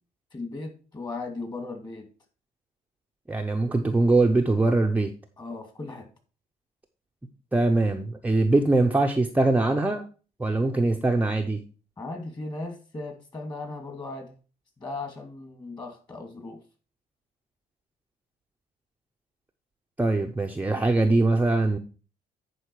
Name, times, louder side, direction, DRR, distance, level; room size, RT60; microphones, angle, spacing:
voice 1, 0.3-2.1 5.4-6.1 12.0-14.3 14.8-16.6, left 3 dB, 25° left, 4 dB, 2.6 m, -37 dB
voice 2, 3.3-5.1 7.5-10.0 10.4-11.6 20.0-21.8, right 2 dB, 10° right, 2 dB, 0.7 m, -22 dB
10.0 x 4.8 x 4.7 m, 0.37 s
cardioid pair, 110°, 17 cm